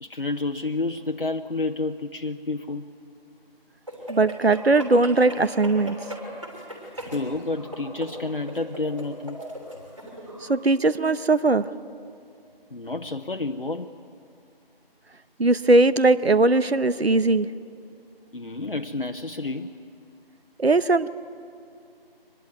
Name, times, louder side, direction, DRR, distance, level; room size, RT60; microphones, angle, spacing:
voice 1, 0.0-2.9 7.1-9.4 12.7-14.0 18.3-19.8, left 3 dB, 65° left, 5 dB, 0.9 m, -30 dB
sound 1, 3.9-10.5, equal, 30° right, 3.2 m, -38 dB
voice 2, 4.1-6.0 10.4-11.7 15.4-17.5 20.6-21.1, right 2 dB, 85° right, 14 dB, 0.9 m, -19 dB
23.5 x 20.0 x 9.1 m, 2.4 s
figure-of-eight pair, 175°, 30 cm